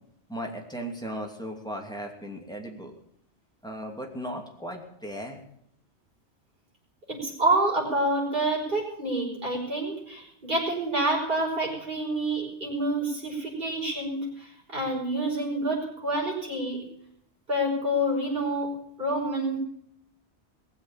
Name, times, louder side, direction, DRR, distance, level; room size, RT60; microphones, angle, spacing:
voice 1, 0.3-2.9 3.6-5.4, equal, 5° left, 1 dB, 2.6 m, -36 dB
voice 2, 7.1-16.9 17.5-18.7 19.0-19.6, right 1 dB, 45° right, -3 dB, 5.6 m, -28 dB
19.0 x 7.7 x 8.8 m, 0.72 s
omnidirectional pair, 1.1 m